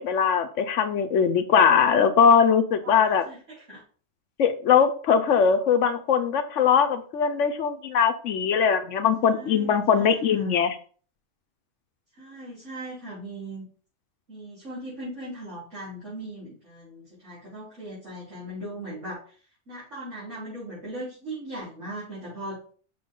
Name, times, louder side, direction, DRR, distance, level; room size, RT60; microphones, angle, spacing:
voice 1, 0.0-3.2 4.4-10.8, left 7 dB, 90° left, 9 dB, 1.1 m, -21 dB
voice 2, 2.8-3.8 9.2-10.5 12.2-13.6 14.3-19.2 19.7-22.6, right 1 dB, 85° right, -10 dB, 4.3 m, -39 dB
6.9 x 6.1 x 3.8 m, 0.42 s
omnidirectional pair, 1.2 m